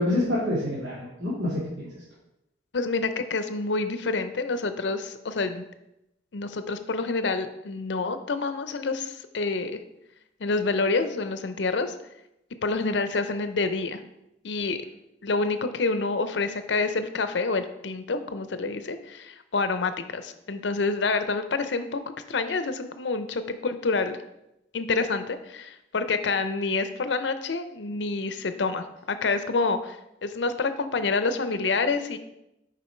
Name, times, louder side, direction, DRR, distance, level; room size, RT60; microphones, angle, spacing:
voice 1, 0.0-2.0, left 1 dB, 90° right, -7 dB, 1.9 m, -27 dB
voice 2, 2.7-5.6 6.3-9.8 10.4-11.9 12.6-14.0 14.4-14.8 15.2-22.0 22.3-24.2 24.7-30.0 30.2-32.2, left 3 dB, 70° left, 10 dB, 0.6 m, -27 dB
6.9 x 5.0 x 4.4 m, 0.87 s
head